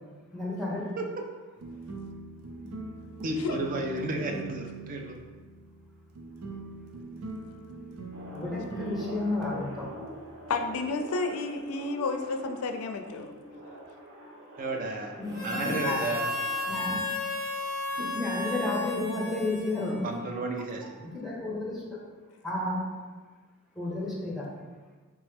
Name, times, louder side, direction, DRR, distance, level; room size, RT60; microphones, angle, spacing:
voice 1, 0.3-1.0 8.3-9.9 15.2-16.0 16.7-17.0 18.0-20.1 21.0-22.0 22.4-22.8 23.7-24.5, left 2 dB, ahead, -5 dB, 0.8 m, -32 dB
sound 1, 1.6-10.9, right 2 dB, 90° right, 0.5 m, -43 dB
voice 2, 3.2-5.2 14.6-16.3 20.0-20.8, right 2 dB, 40° right, 2 dB, 0.4 m, -33 dB
sound 2, 8.1-16.9, equal, 60° right, 0.8 m, -45 dB
voice 3, 10.5-13.4, left 3 dB, 80° left, 6 dB, 0.4 m, -31 dB
Harmonica, 15.3-20.2, left 2 dB, 15° right, 1.1 m, -33 dB
3.4 x 3.1 x 3.3 m, 1.3 s
head